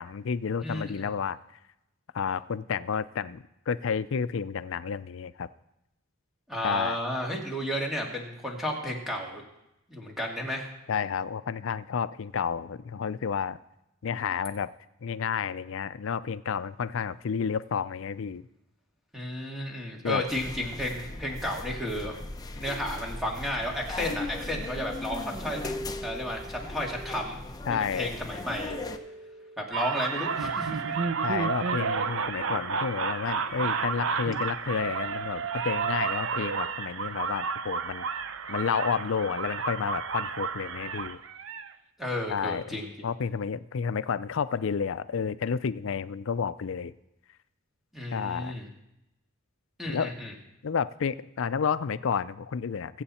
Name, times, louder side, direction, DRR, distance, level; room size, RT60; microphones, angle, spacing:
voice 1, 0.0-1.4 2.1-5.5 6.6-7.0 10.9-13.6 14.0-14.7 15.0-18.5 20.0-20.3 27.7-28.2 31.2-38.1 38.5-41.2 42.3-46.9 48.1-48.5 49.9-50.1 50.6-53.0, left 6 dB, 65° left, 16 dB, 0.4 m, -31 dB
voice 2, 0.6-1.1 6.5-9.4 9.9-10.7 19.1-22.2 22.5-25.6 26.0-27.4 27.7-28.7 29.6-30.8 42.0-42.9 47.9-48.7 49.8-50.3, left 1 dB, ahead, -1 dB, 2.2 m, -32 dB
sound 1, 20.3-29.0, left 2 dB, 20° left, 0.7 m, -38 dB
sound 2, 22.7-24.0 25.6-27.6 28.7-30.2, equal, 30° right, 1.8 m, -44 dB
sound 3, 29.7-41.7, right 5 dB, 65° right, 0.7 m, -31 dB
22.5 x 7.9 x 4.3 m, 0.89 s
head